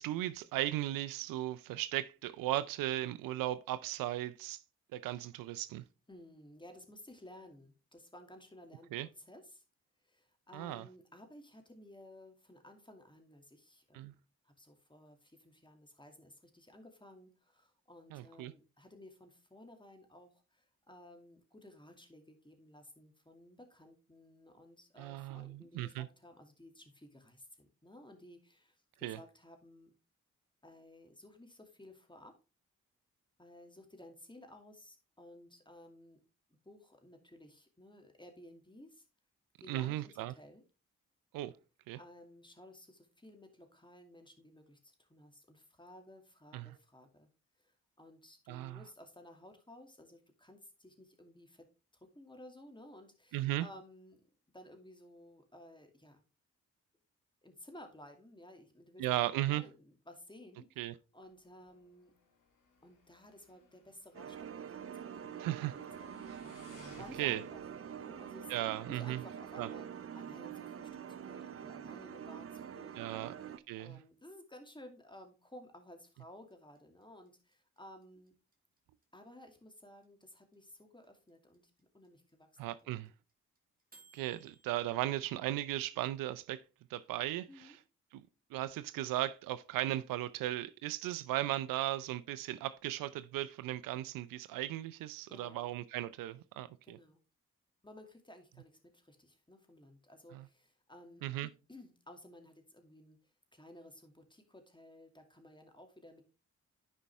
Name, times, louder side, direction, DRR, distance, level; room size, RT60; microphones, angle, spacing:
voice 1, 0.0-4.6 4.9-5.8 8.9-9.1 10.5-10.9 13.9-14.1 18.1-18.5 25.0-26.1 29.0-29.2 39.7-40.3 41.3-41.5 41.9-42.0 46.5-46.7 48.5-48.8 53.3-53.7 59.0-59.6 60.8-60.9 65.4-65.8 66.3-66.4 67.2-67.4 68.5-69.2 69.6-69.7 73.0-73.3 73.7-74.0 82.6-83.1 84.1-86.6 86.9-87.8 88.1-88.2 88.5-97.0 100.3-100.5 101.2-101.5, right 14 dB, 85° right, 0.5 m, -36 dB
voice 2, 6.1-8.9 9.2-9.6 10.0-14.1 14.4-29.9 30.6-32.3 33.4-36.2 36.6-39.0 39.6-40.6 41.9-47.3 47.6-51.7 51.9-54.2 54.5-56.2 57.4-60.7 61.1-62.1 62.8-65.5 66.0-66.2 67.0-67.6 68.0-68.5 68.9-69.9 70.1-73.3 73.8-78.3 79.1-82.9 87.5-87.8 95.3-95.7 96.8-97.2 97.8-103.2 103.5-106.2, left 1 dB, 15° left, 2.4 m, -56 dB
Motorcycle, 61.2-69.5, left 3 dB, 70° left, 2.8 m, -62 dB
sound 1, 64.1-73.6, right 8 dB, 45° right, 0.7 m, -46 dB
sound 2, 76.5-84.8, right 3 dB, 25° right, 2.6 m, -63 dB
9.7 x 5.4 x 3.5 m
supercardioid pair, 40°, 33 cm